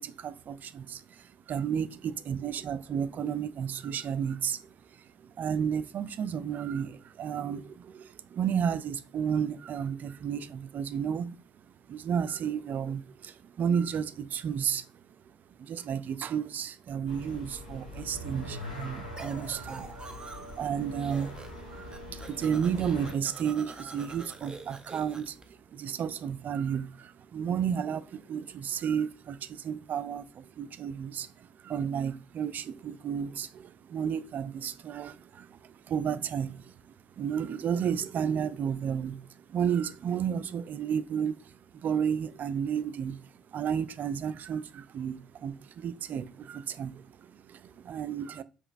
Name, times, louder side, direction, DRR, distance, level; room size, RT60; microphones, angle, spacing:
voice 1, 0.0-4.6 5.4-11.4 11.9-14.9 15.6-21.3 21.7-25.4 25.7-36.7 37.2-39.2 39.5-41.5 41.8-48.4, right 8 dB, 50° right, 0.3 m, -32 dB
sound 1, 17.0-23.1, equal, 90° left, 1.0 m, -42 dB
sound 2, 19.2-20.7 20.9-21.6 21.9-25.4, right 3 dB, 20° right, 0.7 m, -46 dB
4.9 x 3.0 x 2.4 m
figure-of-eight pair, 45°, 4 cm